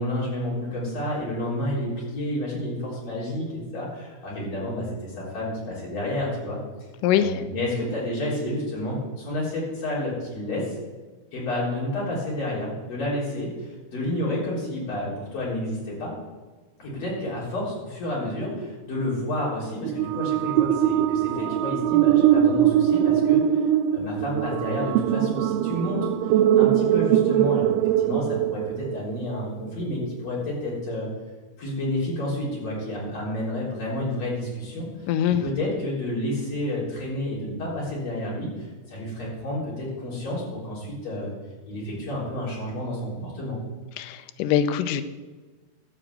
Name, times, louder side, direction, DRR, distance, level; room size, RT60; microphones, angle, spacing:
voice 1, 0.0-6.6 7.1-10.8 11.3-16.1 16.8-23.6 23.9-26.1 26.5-31.1 31.6-41.3 41.7-43.6, left 1 dB, 40° left, -6 dB, 4.7 m, -30 dB
voice 2, 7.0-7.4 35.1-35.4 44.0-45.0, left 10 dB, 80° left, 10 dB, 1.9 m, -23 dB
sound 1, 19.8-29.2, right 11 dB, 85° right, 2.5 m, -21 dB
12.5 x 5.0 x 8.0 m, 1.3 s
omnidirectional pair, 4.5 m